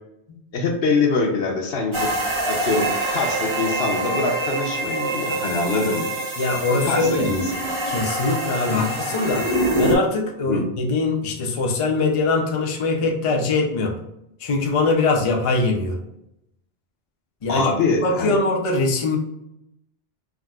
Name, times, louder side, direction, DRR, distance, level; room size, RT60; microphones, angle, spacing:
voice 1, 0.5-2.1 2.5-2.9 3.1-6.1 6.8-7.4 8.6-8.8 10.4-10.6 17.5-18.4, left 3 dB, 65° left, 2 dB, 0.8 m, -23 dB
sound 1, 1.9-10.0, right 2 dB, 35° right, 0.5 m, -25 dB
voice 2, 6.4-7.3 7.9-14.0 14.4-16.0 17.4-17.7 18.0-19.2, left 3 dB, 50° left, 0 dB, 0.4 m, -22 dB
3.6 x 2.6 x 2.3 m, 0.83 s
omnidirectional pair, 1.2 m